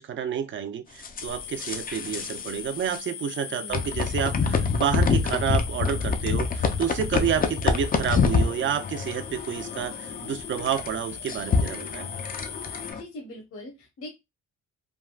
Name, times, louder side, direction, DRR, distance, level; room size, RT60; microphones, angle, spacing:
voice 1, 0.0-12.1, right 8 dB, 40° right, 0.5 m, -29 dB
sound 1, 1.0-2.5 2.8-3.0 3.7-13.0, left 5 dB, 30° left, 0.5 m, -27 dB
sound 2, 1.2-12.9, left 8 dB, 85° left, 0.6 m, -40 dB
voice 2, 12.9-14.1, left 1 dB, 45° left, 1.0 m, -41 dB
3.4 x 2.2 x 2.3 m
cardioid pair, 90°, 30 cm